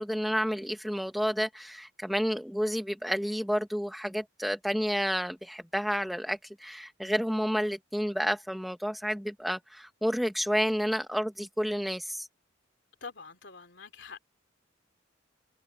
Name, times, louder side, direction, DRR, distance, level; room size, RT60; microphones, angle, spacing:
voice 1, 0.0-12.3, equal, ahead, 1.1 m, -30 dB
voice 2, 13.0-14.2, left 4 dB, 65° left, 2.9 m, -45 dB
head